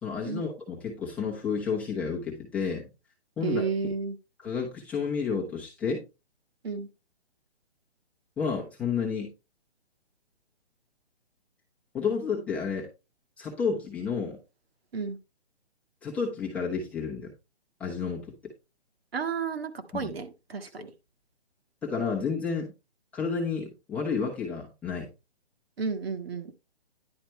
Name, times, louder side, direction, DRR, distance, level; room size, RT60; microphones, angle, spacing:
voice 1, 0.0-2.9 3.4-3.6 4.4-6.0 8.4-9.3 11.9-12.9 13.4-14.4 16.0-17.3 17.8-18.5 19.9-20.1 21.8-22.7 23.1-25.1, left 5 dB, 5° left, 0.8 m, -31 dB
voice 2, 3.4-4.2 6.6-6.9 14.9-15.2 19.1-20.9 25.8-26.5, right 5 dB, 65° right, 1.6 m, -32 dB
10.5 x 4.2 x 4.3 m
hypercardioid pair, 160°, 33 cm